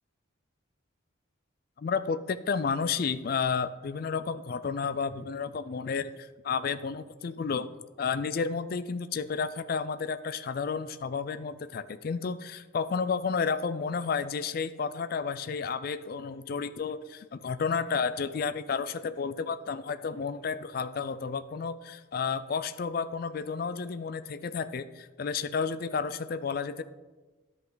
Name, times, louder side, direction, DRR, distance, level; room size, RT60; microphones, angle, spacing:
voice 1, 1.8-7.7 8.0-26.8, left 5 dB, 45° left, 13 dB, 0.3 m, -31 dB
10.5 x 5.6 x 3.9 m, 1.2 s
head